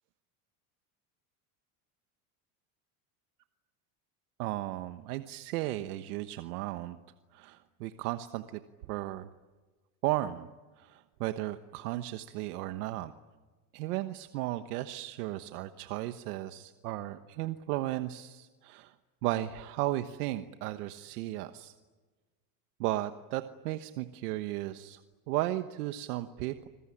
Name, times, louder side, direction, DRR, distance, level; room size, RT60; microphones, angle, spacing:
voice 1, 4.4-7.0 7.3-8.6 8.9-9.3 10.0-10.5 10.8-13.1 13.7-18.9 19.2-21.7 22.8-25.0 25.3-26.7, right 15 dB, 85° right, 9 dB, 1.2 m, -35 dB
27.0 x 21.5 x 10.0 m, 1.3 s
supercardioid pair, 135°, 44 cm